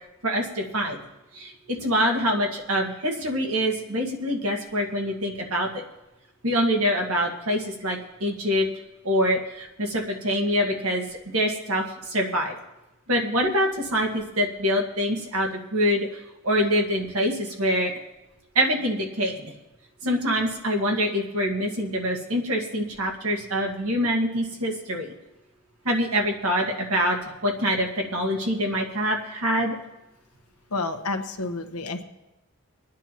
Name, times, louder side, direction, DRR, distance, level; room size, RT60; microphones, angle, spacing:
voice 1, 0.2-1.0 1.3-5.8 6.4-8.7 9.0-11.1 11.3-12.6 13.1-16.1 16.4-17.9 18.6-19.5 20.0-25.1 25.9-27.2 27.4-29.8, equal, 75° right, 1 dB, 1.8 m, -25 dB
voice 2, 30.7-32.0, left 3 dB, 90° left, 7 dB, 1.1 m, -30 dB
25.0 x 9.8 x 3.0 m, 1.0 s
head